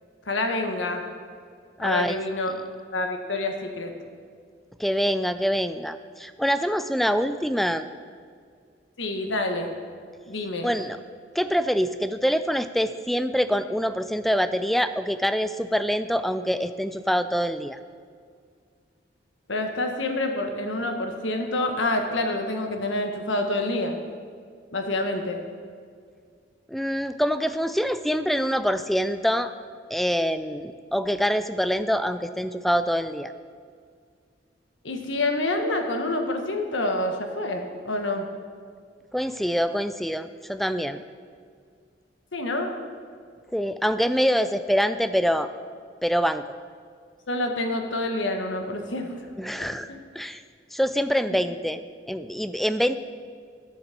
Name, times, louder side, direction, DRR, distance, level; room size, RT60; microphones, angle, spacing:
voice 1, 0.3-1.0 1.8-2.5 2.9-3.9 9.0-9.7 10.3-10.7 19.5-24.0 24.7-25.4 34.8-38.2 42.3-42.8 47.3-49.3 49.9-50.0, left 2 dB, 90° left, 4 dB, 1.4 m, -27 dB
voice 2, 1.8-2.2 4.8-7.9 10.6-11.0 11.4-17.8 26.7-29.5 29.9-33.3 39.1-41.0 43.5-45.5 46.0-46.4 49.4-49.9 50.2-50.4 50.7-53.0, equal, ahead, 11 dB, 0.3 m, -25 dB
10.5 x 7.9 x 6.7 m, 2.1 s
head